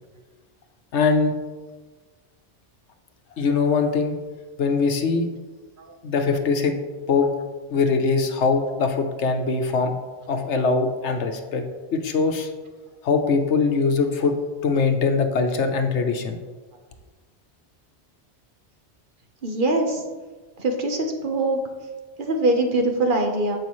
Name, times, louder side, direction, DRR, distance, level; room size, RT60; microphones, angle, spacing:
voice 1, 0.9-1.3 3.4-4.2 4.6-5.3 6.0-6.8 7.1-7.3 7.7-9.9 10.3-11.6 11.9-12.5 13.0-14.4 14.6-16.4, left 4 dB, 85° left, 5 dB, 1.2 m, -22 dB
voice 2, 19.4-20.0 20.6-21.6 22.2-23.6, right 2 dB, 50° right, 3 dB, 1.1 m, -23 dB
14.5 x 5.4 x 3.1 m, 1.3 s
omnidirectional pair, 1.2 m